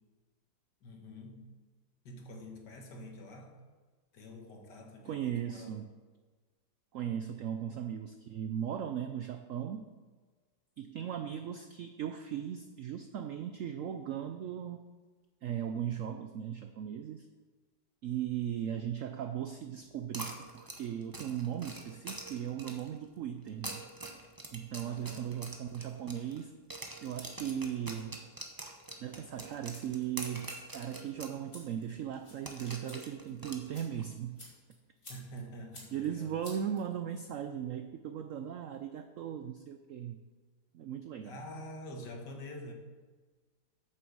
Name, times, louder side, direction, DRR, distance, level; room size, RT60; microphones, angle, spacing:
voice 1, 0.8-1.5 2.1-3.6 4.1-5.8 24.8-25.3 35.1-36.4 41.2-42.7, left 1 dB, 70° left, 2 dB, 2.0 m, -47 dB
voice 2, 5.0-5.9 6.9-9.9 10.8-14.9 15.4-17.3 18.0-23.8 24.5-26.5 27.0-28.2 29.0-34.4 35.9-40.2 40.7-41.4, right 9 dB, 75° right, 8 dB, 0.7 m, -38 dB
sound 1, 20.1-23.0 23.5-26.4 26.7-31.4 31.7-31.8 32.4-34.1, right 2 dB, 20° right, 0.6 m, -45 dB
sound 2, 29.3-37.3, left 1 dB, 35° left, 2.8 m, -56 dB
8.7 x 7.0 x 6.3 m, 1.4 s
omnidirectional pair, 1.9 m